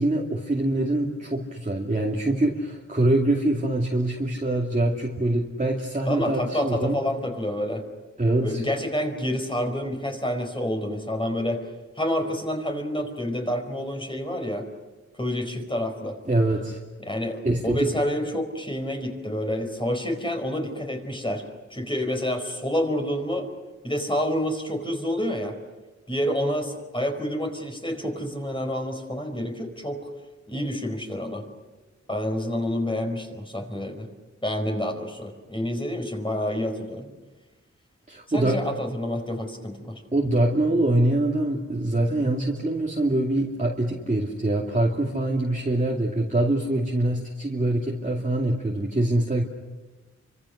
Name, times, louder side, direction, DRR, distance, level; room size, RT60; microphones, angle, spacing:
voice 1, 0.0-7.0 8.2-8.6 16.3-16.8 17.4-17.9 38.1-38.6 40.1-49.4, right 1 dB, 25° right, -3 dB, 2.6 m, -24 dB
voice 2, 6.0-7.8 8.4-11.6 12.0-14.7 15.2-16.2 17.0-21.4 21.7-23.5 23.8-25.5 26.1-30.0 30.5-31.4 32.1-34.1 34.4-37.1 38.3-40.0, equal, 15° left, 3 dB, 4.7 m, -28 dB
29.0 x 25.5 x 6.5 m, 1.2 s
wide cardioid pair, 95°, 29 cm